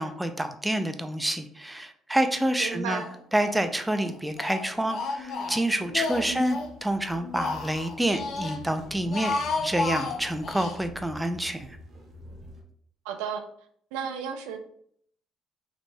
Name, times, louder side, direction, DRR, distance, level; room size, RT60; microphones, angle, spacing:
voice 1, 0.0-3.0 3.3-9.3 9.6-11.8, right 1 dB, 10° right, 8 dB, 0.4 m, -28 dB
voice 2, 2.6-3.1 6.3-6.4 13.0-13.4 13.9-14.6, right 7 dB, 80° right, 5 dB, 0.3 m, -33 dB
Speech, 2.9-3.6 3.9-6.7 7.1-8.6 9.0-10.8, left 3 dB, 60° left, 0.4 m, -32 dB
sound 1, 5.6-12.6, equal, 55° right, 0.7 m, -48 dB
3.2 x 2.5 x 2.2 m, 0.65 s
hypercardioid pair, 60°, 0 cm